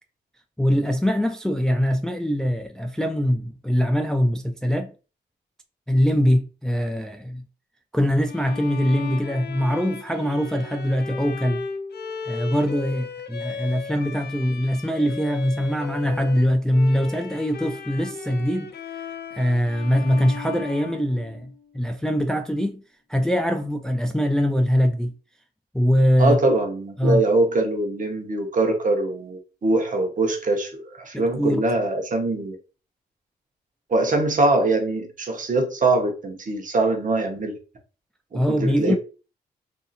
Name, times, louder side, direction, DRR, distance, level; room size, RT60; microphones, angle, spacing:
voice 1, 0.6-4.9 5.9-7.4 7.9-11.6 12.3-18.7 19.3-22.8 23.1-25.1 25.7-26.4 27.0-27.2 31.1-31.6 38.3-39.0, equal, 5° left, 0.4 m, -22 dB
Bowed string instrument, 8.3-21.7, left 5 dB, 60° left, 0.5 m, -36 dB
voice 2, 26.2-32.6 33.9-37.6 38.3-39.0, right 2 dB, 45° right, 1.0 m, -23 dB
2.7 x 2.6 x 2.4 m
supercardioid pair, 50°, 18 cm